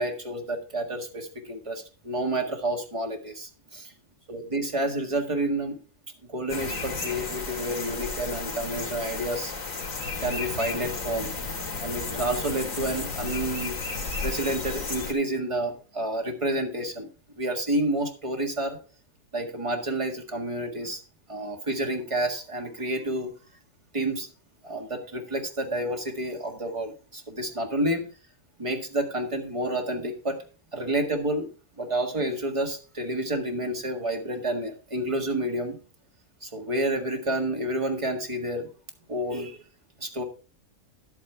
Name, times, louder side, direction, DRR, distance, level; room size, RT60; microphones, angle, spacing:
voice 1, 0.0-3.9 4.3-5.8 6.3-9.5 10.2-11.3 11.8-13.8 14.2-17.1 17.4-18.8 19.3-21.0 21.3-23.3 23.9-24.3 24.6-28.1 28.6-30.4 30.7-31.5 31.8-35.8 36.4-38.7 39.1-39.6 40.0-40.2, right 1 dB, 25° right, 3 dB, 1.7 m, -29 dB
sound 1, 6.5-15.1, left 4 dB, 75° left, 2.2 m, -33 dB
11.0 x 8.6 x 3.4 m, 0.35 s
omnidirectional pair, 1.4 m